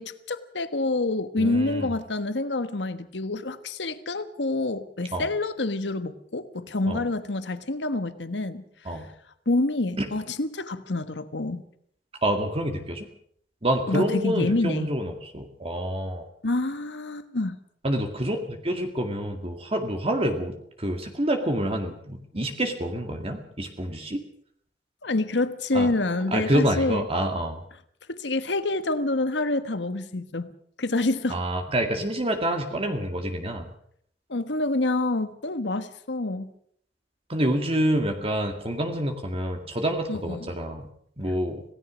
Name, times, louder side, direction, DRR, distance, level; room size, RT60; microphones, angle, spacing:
voice 1, 0.0-8.9 9.5-11.6 13.9-14.9 16.4-17.6 25.0-27.0 28.1-30.5 30.8-31.4 34.3-36.5 40.1-40.5, left 2 dB, 85° left, 1.4 m, -27 dB
voice 2, 1.4-1.9 5.1-5.3 6.9-7.0 8.9-9.1 10.0-10.1 12.2-13.1 13.6-16.3 17.8-24.2 25.7-25.9 26.3-27.6 31.3-33.7 37.3-40.9 41.2-41.6, right 1 dB, 35° right, 2.0 m, -27 dB
26.5 x 17.5 x 6.3 m
head